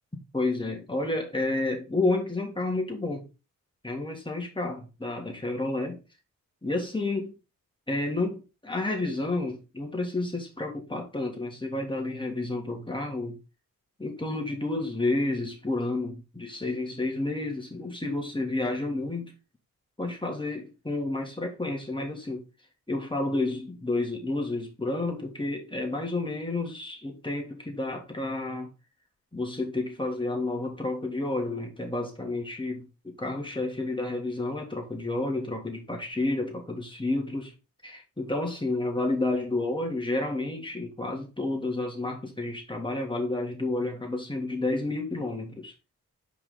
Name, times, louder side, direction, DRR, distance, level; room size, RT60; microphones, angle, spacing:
voice 1, 0.3-3.3 3.8-6.0 6.6-7.3 7.9-13.4 14.0-19.3 20.0-22.5 22.9-28.7 29.3-37.5 37.8-45.7, left 2 dB, 15° left, 2.9 m, -30 dB
6.0 x 4.8 x 3.9 m
supercardioid pair, 45°, 34 cm